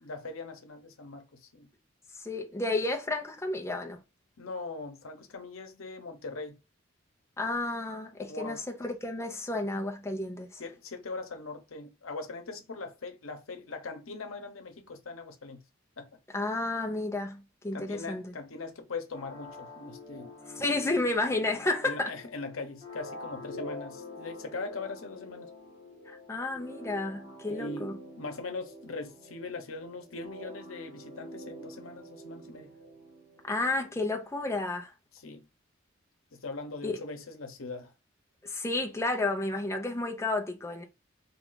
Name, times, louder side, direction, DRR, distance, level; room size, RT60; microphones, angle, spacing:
voice 1, 0.0-1.7 4.4-6.6 8.2-8.6 10.6-15.6 16.0-16.1 17.7-20.3 21.6-25.5 27.4-32.7 35.1-35.4 36.3-37.9, left 3 dB, 90° left, 0.9 m, -41 dB
voice 2, 2.2-4.0 7.4-10.6 16.3-18.2 20.5-22.1 26.1-27.9 33.4-34.9 36.8-36.9 38.4-40.8, left 2 dB, 15° left, 0.7 m, -31 dB
sound 1, 19.1-33.7, left 1 dB, 45° right, 2.2 m, -46 dB
3.4 x 2.5 x 3.8 m
head